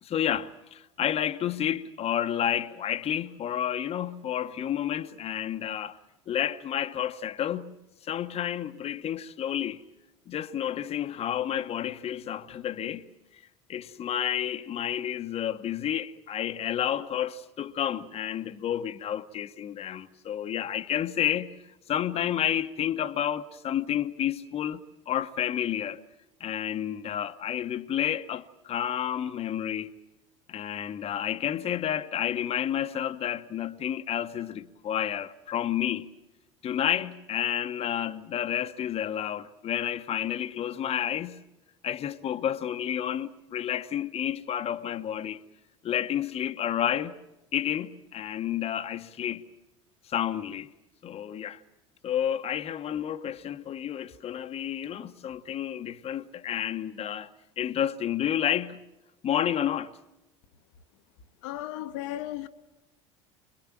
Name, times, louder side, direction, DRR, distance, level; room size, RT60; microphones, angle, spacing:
voice 1, 0.0-6.0 6.3-7.7 8.0-9.8 10.3-13.1 13.7-21.6 21.9-26.0 26.4-29.9 30.5-36.1 36.6-41.4 41.8-45.4 45.8-47.2 47.5-49.5 50.1-50.7 51.0-51.6 52.0-58.8 59.2-60.0, left 10 dB, 40° left, 1.1 m, -30 dB
voice 2, 61.4-62.5, left 13 dB, 70° left, 1.1 m, -35 dB
25.5 x 21.5 x 7.5 m
hypercardioid pair, 75°, 16 cm